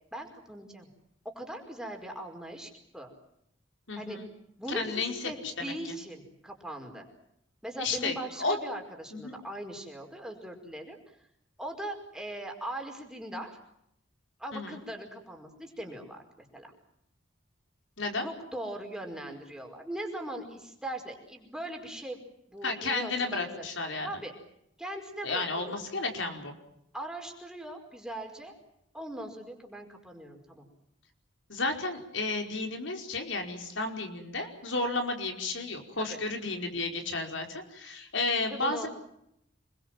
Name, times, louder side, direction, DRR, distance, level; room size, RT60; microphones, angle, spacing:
voice 1, 0.1-0.9 1.3-3.1 4.0-4.2 4.6-7.1 7.6-11.0 11.6-13.5 14.4-16.7 18.2-22.2 22.5-23.6 24.0-24.3 24.8-25.8 26.9-28.5 28.9-30.7 36.0-36.2 38.4-38.9, right 1 dB, 5° right, 2 dB, 5.0 m, -40 dB
voice 2, 3.9-4.3 4.7-5.3 5.6-5.9 7.8-8.6 9.1-9.3 14.5-14.8 18.0-18.3 22.6-24.1 25.2-26.5 31.5-38.9, left 3 dB, 75° left, 4 dB, 4.9 m, -32 dB
28.0 x 21.5 x 7.6 m, 0.77 s
head